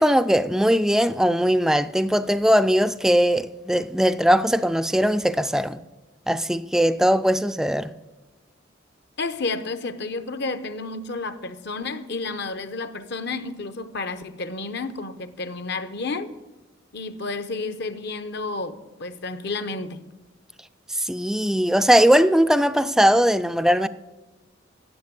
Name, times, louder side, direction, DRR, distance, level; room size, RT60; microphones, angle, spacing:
voice 1, 0.0-5.8 6.3-7.9 20.9-23.9, equal, 5° right, 0.3 m, -20 dB
voice 2, 9.2-16.3 16.9-20.0, left 3 dB, 60° left, 0.8 m, -31 dB
10.5 x 8.0 x 8.4 m
head